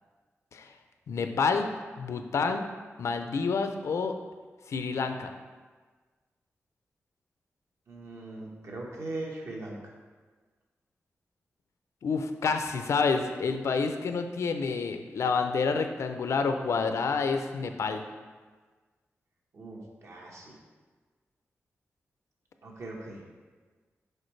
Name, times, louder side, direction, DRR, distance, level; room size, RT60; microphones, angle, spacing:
voice 1, 1.1-1.7 2.0-2.7 3.0-4.1 4.7-5.3 12.0-18.0, left 4 dB, 85° left, 7 dB, 0.4 m, -28 dB
voice 2, 7.9-9.9 19.5-20.5 22.6-23.2, right 2 dB, 70° right, -1 dB, 1.1 m, -40 dB
6.5 x 4.5 x 3.2 m, 1.4 s
wide cardioid pair, 105°, 5 cm